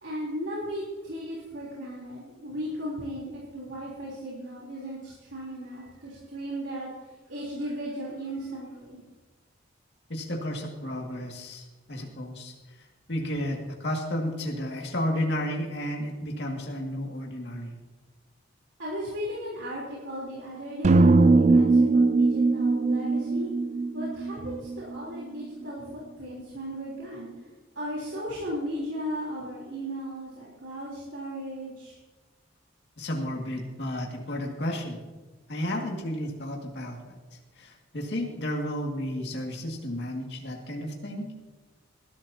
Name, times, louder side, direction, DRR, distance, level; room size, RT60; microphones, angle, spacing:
voice 1, 0.0-6.9 7.3-9.0 18.8-23.5 23.9-27.3 27.8-32.0, equal, 75° right, -6 dB, 3.6 m, -36 dB
voice 2, 10.1-11.6 11.9-12.5 13.1-17.7 33.0-35.0 35.5-37.2 37.6-41.3, left 1 dB, 60° left, 0 dB, 2.2 m, -32 dB
sound 1, 20.8-25.0, right 3 dB, 35° right, 0.3 m, -21 dB
19.5 x 12.0 x 2.9 m, 1.3 s
head